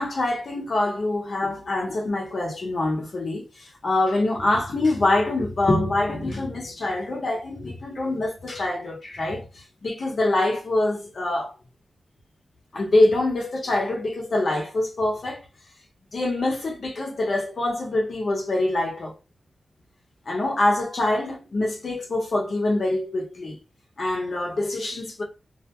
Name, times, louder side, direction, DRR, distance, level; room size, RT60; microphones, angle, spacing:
voice 1, 0.0-11.5 12.7-15.4 16.1-19.1 20.3-23.6 24.0-25.2, left 2 dB, 60° left, 0.9 m, -25 dB
2.6 x 2.2 x 2.9 m
wide cardioid pair, 95°, 0 cm